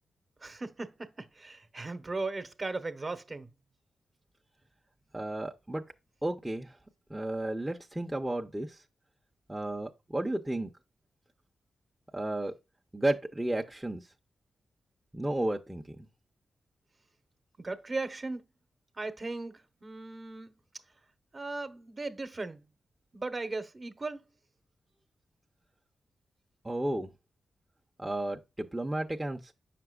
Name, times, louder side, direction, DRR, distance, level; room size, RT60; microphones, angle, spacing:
voice 1, 0.4-3.5 17.6-18.4 19.0-20.5 21.3-22.7 23.1-24.2, right 3 dB, 35° right, 1.0 m, -37 dB
voice 2, 5.1-5.8 6.2-6.7 7.1-8.8 9.5-10.7 12.1-12.5 12.9-14.0 15.1-16.0 26.6-27.1 28.0-29.5, right 1 dB, 10° right, 0.7 m, -33 dB
7.4 x 5.9 x 2.4 m
cardioid pair, 65°, 0 cm